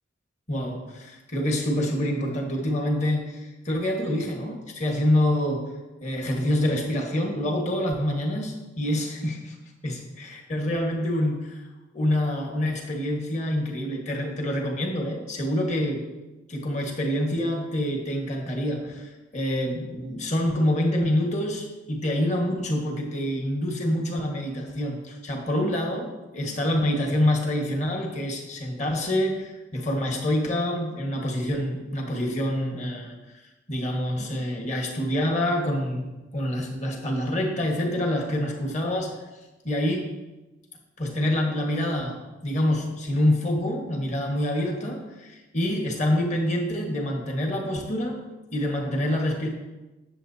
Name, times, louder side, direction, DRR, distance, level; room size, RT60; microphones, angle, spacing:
voice 1, 0.5-5.7 6.0-9.5 9.8-11.6 11.9-16.1 16.5-33.1 33.7-39.2 39.6-40.1 41.0-48.2 48.5-49.5, left 1 dB, 40° left, 1 dB, 1.5 m, -26 dB
19.0 x 7.3 x 2.8 m, 1.1 s
head